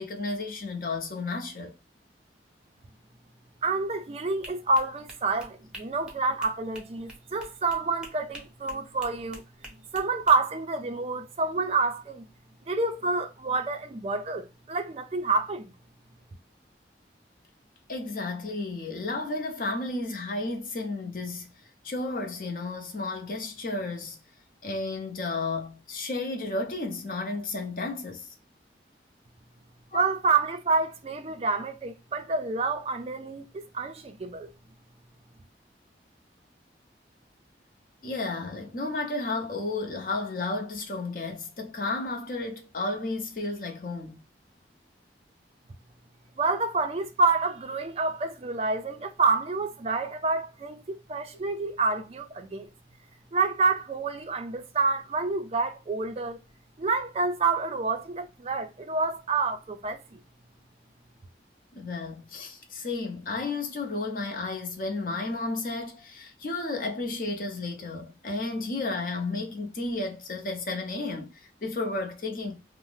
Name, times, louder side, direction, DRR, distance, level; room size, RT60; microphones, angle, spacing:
voice 1, 0.0-1.7 17.9-21.5 21.8-24.2 24.6-28.3 29.9-30.0 38.0-44.2 61.7-72.6, left 3 dB, 50° left, 0.6 m, -32 dB
voice 2, 3.6-9.4 9.9-12.2 12.7-15.7 29.9-34.5 46.4-52.7 53.3-56.4 56.8-60.2, right 3 dB, 35° right, 0.3 m, -28 dB
sound 1, 4.4-10.4, right 1 dB, 5° right, 0.7 m, -47 dB
2.7 x 2.0 x 3.1 m
head